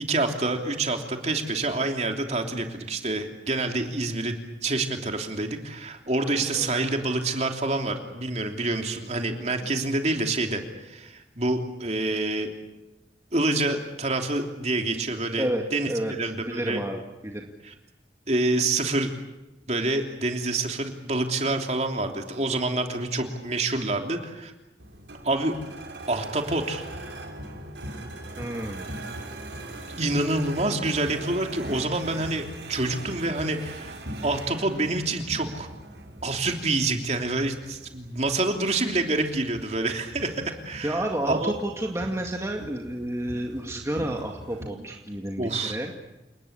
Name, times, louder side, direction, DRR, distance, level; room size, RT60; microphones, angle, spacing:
voice 1, 0.0-12.5 13.3-16.8 17.6-17.7 18.3-19.1 19.7-24.5 25.2-25.6 26.1-26.8 30.0-34.0 34.2-35.7 36.2-41.5 45.4-45.8, right 2 dB, 40° right, 4 dB, 3.1 m, -27 dB
voice 2, 15.4-16.1 16.4-17.5 28.4-28.9 40.8-45.9, right 1 dB, 15° right, 1 dB, 2.0 m, -30 dB
sound 1, 24.8-44.7, right 1 dB, 80° right, 5.5 m, -41 dB
29.0 x 19.5 x 8.8 m, 1.0 s
head